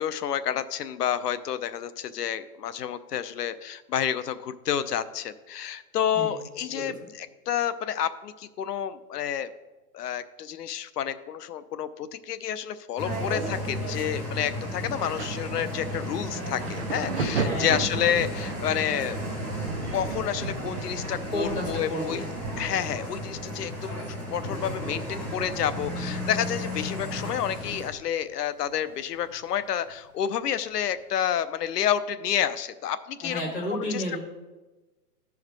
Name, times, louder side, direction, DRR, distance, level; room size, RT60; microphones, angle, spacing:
voice 1, 0.0-9.5 9.9-19.2 19.9-22.2 22.6-33.4 33.7-34.2, left 9 dB, 90° left, 13 dB, 0.8 m, -29 dB
sound 1, 13.0-27.9, equal, 5° left, 0.6 m, -34 dB
Thunder, 14.9-28.3 28.6-29.9 30.7-30.9, right 4 dB, 45° right, 0.5 m, -37 dB
voice 2, 17.4-17.8 21.3-22.3 33.2-34.2, equal, 35° left, -5 dB, 3.0 m, -32 dB
13.0 x 4.8 x 4.7 m, 1.1 s
hypercardioid pair, 175°, 46 cm